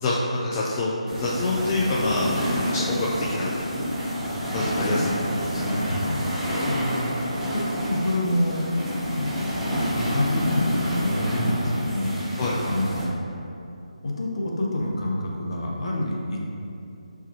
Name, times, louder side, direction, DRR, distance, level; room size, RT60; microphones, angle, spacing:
voice 1, 0.0-3.5 4.5-5.0 12.4-12.6, left 2 dB, 20° left, -7 dB, 0.5 m, -26 dB
sound 1, 1.1-13.0, equal, 10° right, 1.0 m, -28 dB
voice 2, 4.8-5.2 5.5-6.2 6.6-8.7 9.1-9.3 9.9-13.1 14.0-16.5, left 1 dB, 50° left, -2 dB, 0.9 m, -27 dB
7.1 x 4.7 x 2.8 m, 2.7 s
figure-of-eight pair, 150°, 4 cm